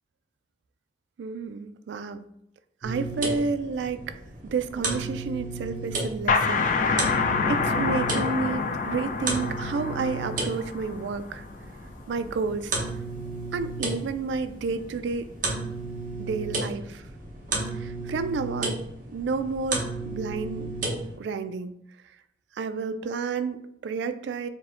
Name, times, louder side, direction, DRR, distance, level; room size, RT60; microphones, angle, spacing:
voice 1, 1.2-2.2 2.8-4.1 4.4-7.1 7.5-11.4 12.1-12.7 13.5-15.3 16.2-17.0 17.7-18.8 19.1-20.7 21.2-21.7 22.5-24.5, right 4 dB, 75° right, 10 dB, 0.3 m, -30 dB
sound 1, 2.8-21.2, right 3 dB, 45° right, 0.9 m, -33 dB
sound 2, 6.3-11.7, left 4 dB, 45° left, 0.3 m, -27 dB
4.6 x 2.1 x 3.6 m, 0.75 s
head